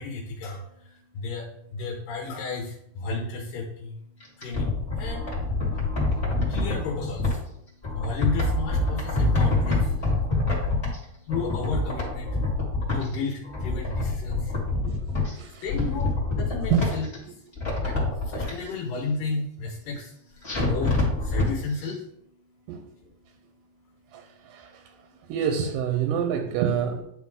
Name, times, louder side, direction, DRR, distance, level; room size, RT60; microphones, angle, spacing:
voice 1, 0.0-25.3, left 3 dB, 75° left, -1 dB, 2.6 m, -35 dB
sound 1, 4.2-7.3 7.8-11.0 11.3-13.1 13.4-15.3 15.7-17.2 17.5-18.5 20.4-21.5 21.8-21.9, left 2 dB, 20° left, 2.3 m, -26 dB
voice 2, 24.1-25.0 25.3-27.0, right 8 dB, 75° right, 5 dB, 2.1 m, -27 dB
10.5 x 3.8 x 3.6 m, 0.75 s
omnidirectional pair, 4.0 m